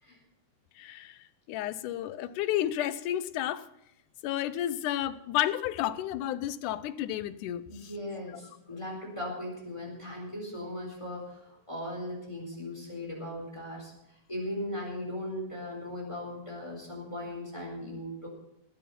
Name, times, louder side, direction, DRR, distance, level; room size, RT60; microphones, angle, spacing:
voice 1, 0.8-1.2 1.5-3.7 4.2-7.9, left 12 dB, 85° left, 14 dB, 2.2 m, -31 dB
voice 2, 7.7-18.3, left 1 dB, 10° left, -1 dB, 4.0 m, -38 dB
19.0 x 8.5 x 5.5 m, 0.83 s
omnidirectional pair, 3.6 m